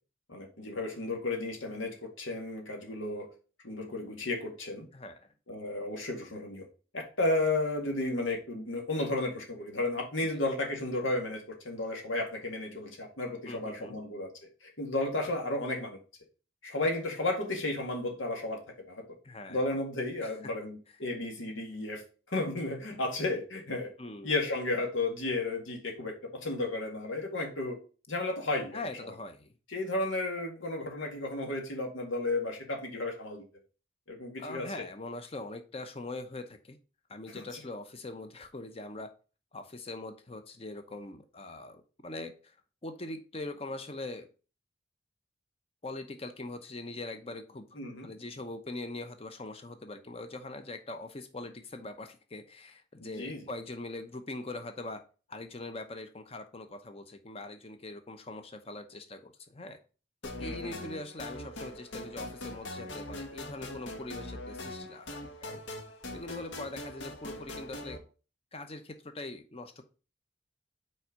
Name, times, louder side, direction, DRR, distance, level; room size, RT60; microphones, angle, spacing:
voice 1, 0.3-3.3 3.6-4.9 5.5-6.7 6.9-14.3 14.6-16.0 16.6-18.6 18.9-19.0 19.5-23.9 24.2-27.8 28.1-29.1 29.7-33.4 34.1-34.8 37.3-37.6 47.8-48.1 53.0-53.4 60.4-60.8, left 2 dB, 90° left, 2 dB, 1.9 m, -33 dB
voice 2, 4.9-5.3 13.5-14.0 19.2-19.6 20.2-20.3 24.0-24.3 28.7-29.5 34.4-36.8 37.1-39.1 39.5-42.5 42.8-44.3 45.8-47.6 48.0-55.0 55.3-59.8 60.2-65.6 66.1-68.0 68.5-69.8, left 2 dB, 30° left, 8 dB, 0.8 m, -42 dB
sound 1, 60.2-68.0, left 1 dB, 70° left, 1.2 m, -42 dB
5.6 x 4.5 x 5.1 m, 0.35 s
head